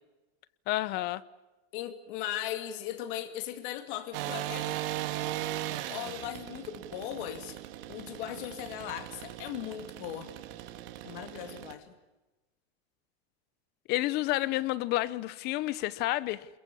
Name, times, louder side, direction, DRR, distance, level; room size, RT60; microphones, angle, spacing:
voice 1, 0.7-1.2 13.9-16.5, left 17 dB, 30° left, 0.8 m, -30 dB
voice 2, 1.7-4.7 5.9-7.6 7.9-10.3 11.0-11.9, left 11 dB, 50° left, 2.5 m, -38 dB
sound 1, 4.1-11.7, right 13 dB, 60° right, 2.8 m, -38 dB
28.0 x 22.0 x 7.2 m
supercardioid pair, 170°, 32 cm